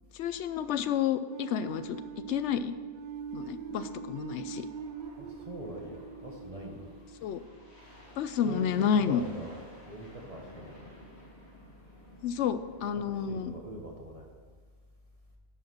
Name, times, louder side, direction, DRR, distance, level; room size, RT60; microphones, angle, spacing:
voice 1, 0.1-2.0 2.3-2.7 3.3-4.7 7.2-7.4 8.2-9.2 12.2-13.5, left 8 dB, 85° left, 12 dB, 0.9 m, -30 dB
sound 1, 1.3-8.2, right 6 dB, 55° right, 0.6 m, -43 dB
sound 2, 4.6-13.3, left 1 dB, 65° left, 2.3 m, -54 dB
voice 2, 5.2-6.9 8.4-10.8 12.9-14.3, right 1 dB, 35° right, 0 dB, 1.2 m, -43 dB
11.0 x 4.8 x 6.1 m, 1.5 s
omnidirectional pair, 1.2 m